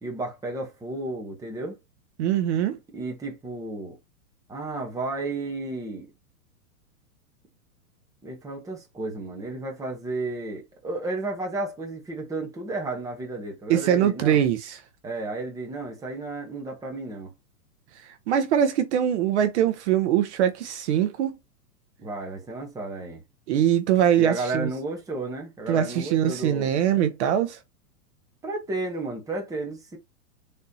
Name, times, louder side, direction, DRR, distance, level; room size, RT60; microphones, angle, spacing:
voice 1, 0.0-1.8 2.9-4.0 4.5-6.1 8.2-14.4 15.0-17.3 22.0-23.2 24.2-26.7 28.4-30.0, right 2 dB, 10° right, 1.0 m, -33 dB
voice 2, 2.2-2.8 13.7-14.8 18.0-21.4 23.5-24.7 25.7-27.6, right 10 dB, 50° right, 0.8 m, -22 dB
4.1 x 3.4 x 2.8 m
hypercardioid pair, 145°, 45 cm